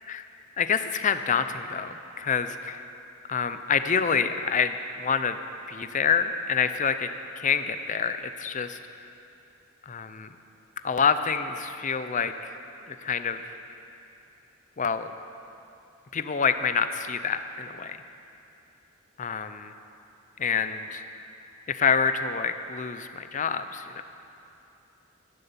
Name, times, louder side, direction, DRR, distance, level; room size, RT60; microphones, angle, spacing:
voice 1, 0.6-2.8 3.3-5.4 5.7-7.1 7.4-8.8 9.9-10.3 10.8-12.5 12.9-13.5 14.8-15.1 16.1-18.0 19.2-19.7 20.4-21.0 21.7-24.0, left 6 dB, 35° left, 10 dB, 0.6 m, -27 dB
14.0 x 11.0 x 7.0 m, 2.8 s
head